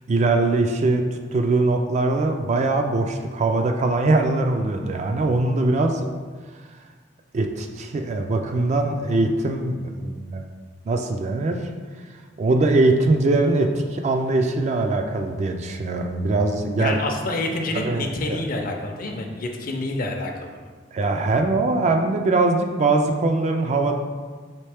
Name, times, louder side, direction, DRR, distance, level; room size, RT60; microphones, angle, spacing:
voice 1, 0.1-1.0 1.3-6.1 7.3-10.4 10.9-11.7 12.4-17.0 17.8-18.0 20.9-24.0, right 2 dB, 40° right, 4 dB, 0.3 m, -21 dB
voice 2, 16.8-20.6, left 2 dB, 50° left, 2 dB, 0.5 m, -28 dB
4.4 x 3.1 x 3.4 m, 1.5 s
head